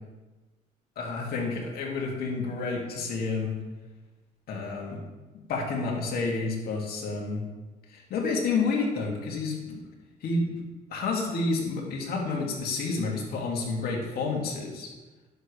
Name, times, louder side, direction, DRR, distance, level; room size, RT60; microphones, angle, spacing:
voice 1, 1.0-3.6 4.5-5.0 5.5-7.4 7.9-9.8 10.2-10.6 10.9-14.9, left 3 dB, 65° left, -2 dB, 2.3 m, -29 dB
10.5 x 7.0 x 3.3 m, 1.2 s
cardioid pair, 110°, 17 cm